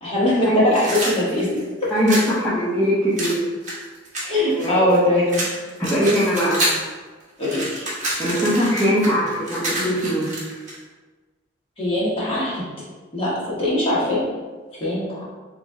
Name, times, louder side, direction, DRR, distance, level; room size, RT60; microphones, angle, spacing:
voice 1, 0.0-1.5 1.8-1.9 4.2-5.5 7.4-7.8 11.8-12.7 13.1-14.2 14.8-15.2, left 1 dB, 30° left, -8 dB, 1.2 m, -21 dB
sound 1, 0.7-2.3 3.2-5.0 5.3-6.9 7.2-10.8, right 1 dB, 40° right, 1.0 m, -27 dB
voice 2, 1.9-3.4 4.5-4.9 5.8-6.6 8.2-10.3, equal, 5° left, -11 dB, 0.6 m, -21 dB
3.2 x 3.0 x 3.6 m, 1.3 s
head